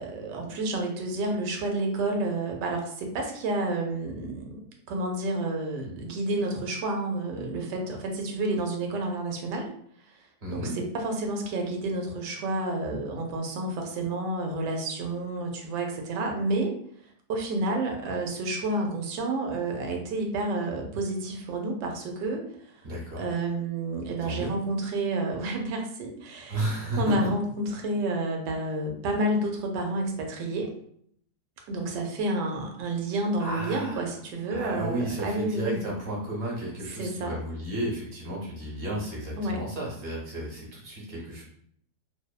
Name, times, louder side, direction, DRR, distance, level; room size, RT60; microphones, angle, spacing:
voice 1, 0.0-4.6 4.9-9.7 10.5-16.8 17.3-22.8 23.2-26.6 27.0-30.7 31.7-35.8 37.0-37.3 39.4-39.6, right 2 dB, 85° right, 2 dB, 1.2 m, -30 dB
voice 2, 10.4-10.7 22.8-23.2 24.2-24.5 26.5-27.3 33.4-34.1 34.5-41.4, right 1 dB, 45° right, -3 dB, 0.8 m, -33 dB
2.9 x 2.0 x 2.2 m, 0.65 s
omnidirectional pair, 1.8 m